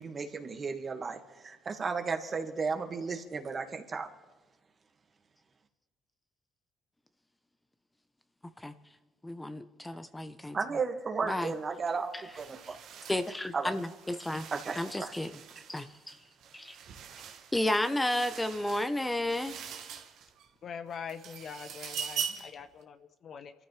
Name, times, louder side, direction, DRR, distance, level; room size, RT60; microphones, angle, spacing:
voice 1, 0.0-4.1 10.5-12.1 12.4-12.8 13.5-13.8 14.5-15.1, right 5 dB, 45° right, 5 dB, 2.1 m, -34 dB
voice 2, 9.2-10.6 11.3-11.5 13.1-14.5 14.8-15.3 15.7-16.1 16.5-16.8 17.5-19.6, left 1 dB, 15° left, 10 dB, 1.0 m, -32 dB
sound 1, 11.4-11.6 11.9-20.5 20.9-22.6, right 7 dB, 70° right, 1.5 m, -43 dB
voice 3, 20.6-23.5, left 7 dB, 60° left, 10 dB, 1.0 m, -43 dB
28.0 x 14.0 x 3.5 m, 1.2 s
hypercardioid pair, 55°, 0 cm